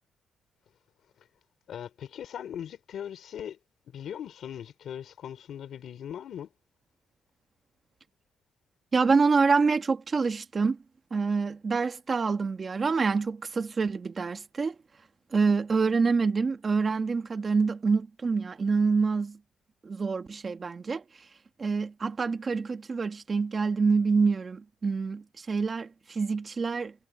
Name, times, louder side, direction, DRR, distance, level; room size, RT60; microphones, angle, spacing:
voice 1, 1.7-3.6 3.9-6.5, left 9 dB, 60° left, 3.2 m, -39 dB
voice 2, 8.9-10.8 11.1-14.7 15.3-19.4 19.8-21.0 21.6-26.9, right 4 dB, 30° right, 1.5 m, -26 dB
cardioid pair, 140°, 0 cm